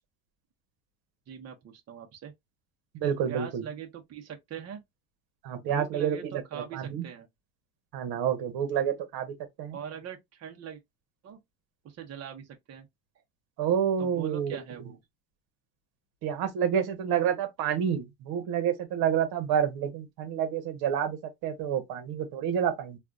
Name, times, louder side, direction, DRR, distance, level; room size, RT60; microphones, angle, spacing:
voice 1, 1.3-2.3 3.3-4.8 5.6-7.3 9.7-10.8 11.2-11.4 11.8-12.9 14.0-15.0, right 8 dB, 40° right, 1.0 m, -42 dB
voice 2, 2.9-3.6 5.4-7.1 7.9-9.8 13.6-14.6 16.2-23.0, right 8 dB, 65° right, 1.1 m, -29 dB
3.3 x 2.5 x 2.5 m
supercardioid pair, 100°, 40 cm